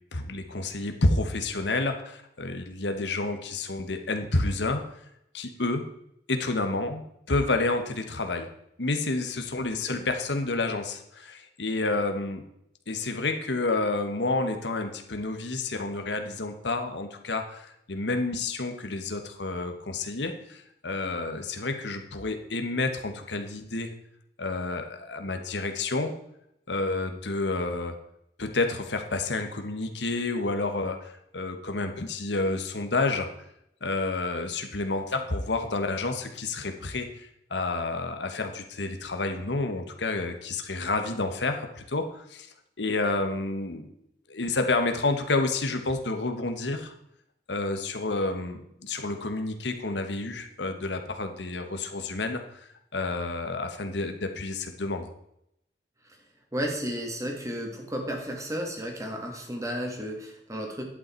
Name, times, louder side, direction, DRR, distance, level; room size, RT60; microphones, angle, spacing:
voice 1, 0.1-4.8 5.3-5.9 6.3-7.0 7.3-8.5 8.8-12.4 12.9-23.9 24.4-26.2 26.7-28.0 28.4-33.3 33.8-42.5 42.8-43.9 44.3-46.9 47.5-55.1, left 2 dB, 70° left, 6 dB, 1.2 m, -29 dB
voice 2, 56.5-60.8, equal, 20° right, 2 dB, 2.0 m, -33 dB
11.0 x 8.7 x 4.5 m, 0.77 s
head